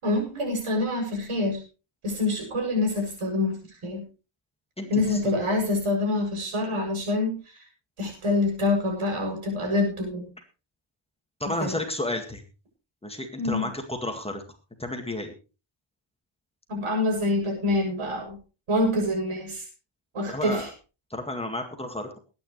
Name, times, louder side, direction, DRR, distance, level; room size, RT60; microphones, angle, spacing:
voice 1, 0.0-1.6 2.0-4.0 4.9-7.6 8.0-10.3 11.6-11.7 13.4-13.7 16.7-18.4 18.7-19.6 20.1-20.7, left 2 dB, 80° right, 2 dB, 7.3 m, -26 dB
voice 2, 4.8-5.2 11.4-12.4 13.0-14.4 14.8-15.4 20.3-20.7 21.1-22.2, left 1 dB, 10° left, 3 dB, 1.9 m, -32 dB
21.5 x 9.8 x 3.2 m, 0.33 s
wide cardioid pair, 170°, 49 cm